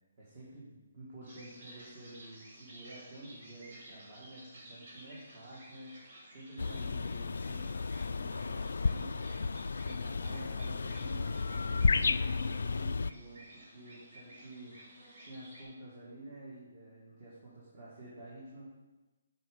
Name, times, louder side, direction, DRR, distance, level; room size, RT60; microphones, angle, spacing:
voice 1, 0.2-14.8 15.3-18.7, right 1 dB, 40° right, -8 dB, 2.3 m, -50 dB
sound 1, 1.2-15.6, right 1 dB, 55° right, 2.8 m, -54 dB
sound 2, 6.6-13.1, left 4 dB, 75° left, 0.3 m, -32 dB
8.8 x 4.9 x 5.4 m, 1.1 s
hypercardioid pair, 160°, 0 cm